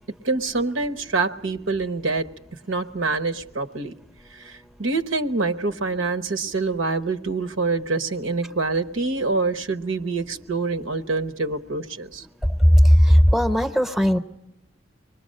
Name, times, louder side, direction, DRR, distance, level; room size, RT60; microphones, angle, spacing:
voice 1, 0.2-2.3 2.7-3.9 4.3-12.2, right 3 dB, 90° right, 11 dB, 1.1 m, -26 dB
voice 2, 12.6-14.2, equal, ahead, 9 dB, 0.8 m, -16 dB
25.5 x 21.0 x 6.5 m, 0.91 s
head